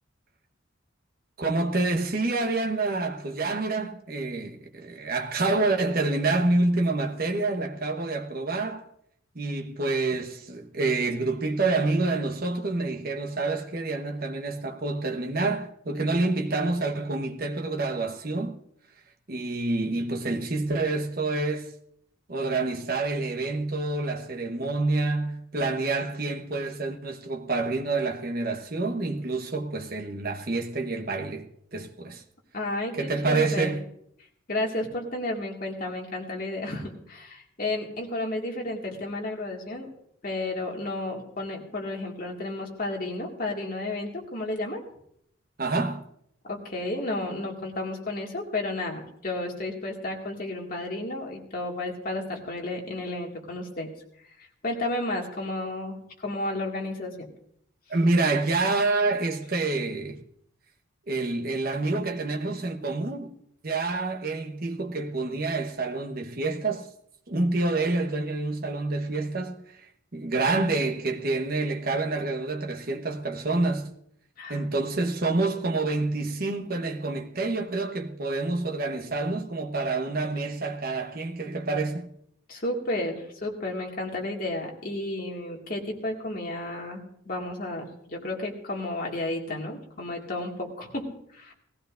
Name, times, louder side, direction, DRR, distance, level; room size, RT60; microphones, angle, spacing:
voice 1, 1.4-8.9 9.3-18.6 19.3-21.7 22.3-32.2 33.0-33.8 45.6-46.0 57.9-60.2 61.1-63.3 63.6-66.9 67.3-69.6 70.1-73.9 74.5-82.1, right 3 dB, 50° right, 1.1 m, -27 dB
voice 2, 32.5-33.8 34.5-39.9 40.2-44.8 46.4-53.9 54.6-56.0 56.2-57.1 74.4-74.6 82.5-91.5, left 2 dB, 45° left, 2.1 m, -32 dB
18.5 x 15.0 x 2.6 m
head